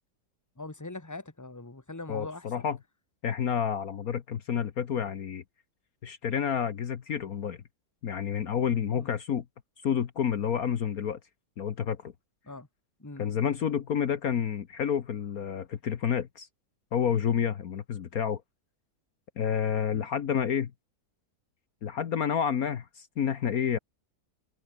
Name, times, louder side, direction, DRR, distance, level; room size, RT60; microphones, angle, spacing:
voice 1, 0.6-2.6 8.9-9.1 12.4-12.7 13.0-13.2 19.9-20.1, left 2 dB, 10° left, 2.0 m, -42 dB
voice 2, 2.1-2.8 3.2-5.4 6.0-7.6 8.0-9.4 9.8-11.2 11.6-12.1 13.2-16.5 16.9-18.4 19.4-20.7 21.8-23.8, left 8 dB, 60° left, 1.5 m, -29 dB
omnidirectional pair, 1.8 m